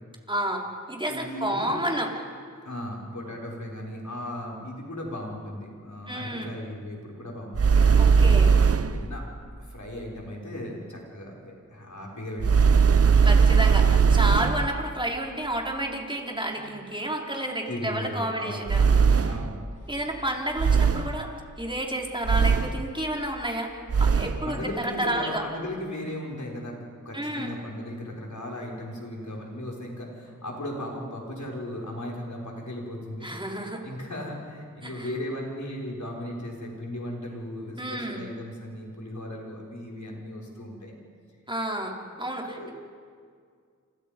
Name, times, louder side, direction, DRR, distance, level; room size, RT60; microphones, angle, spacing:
voice 1, 0.3-2.1 6.1-6.5 8.0-8.6 13.2-19.3 19.9-21.3 21.6-23.7 24.0-25.4 27.1-27.5 33.2-33.8 34.8-35.1 37.8-38.2 41.5-42.7, right 1 dB, 15° right, 0 dB, 4.3 m, -30 dB
voice 2, 1.1-1.8 2.6-8.2 8.9-9.3 9.6-12.9 14.3-14.7 16.5-16.7 17.7-18.7 19.2-19.6 24.4-26.8 27.0-33.3 33.8-40.9 42.4-42.7, left 1 dB, 65° left, -2 dB, 5.9 m, -36 dB
sound 1, 7.5-9.1 12.4-14.7 18.7-19.6 20.6-21.2 22.2-22.9 23.9-24.4, right 6 dB, 50° right, 0.7 m, -19 dB
29.0 x 26.0 x 5.4 m, 2.1 s
wide cardioid pair, 50°, 31 cm